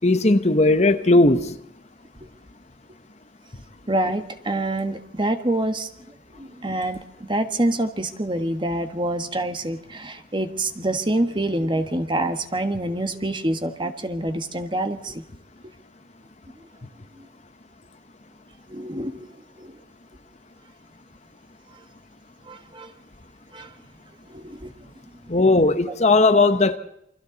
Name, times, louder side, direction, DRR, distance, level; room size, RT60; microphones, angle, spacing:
voice 1, 0.0-1.6 25.3-26.8, left 2 dB, 40° left, 1.0 m, -17 dB
voice 2, 3.9-5.9 6.4-15.2 17.2-17.3 18.7-19.3 19.6-19.8 22.5-22.9 23.5-23.7 24.3-24.7, right 1 dB, 25° right, 1.6 m, -26 dB
28.5 x 25.0 x 4.1 m
head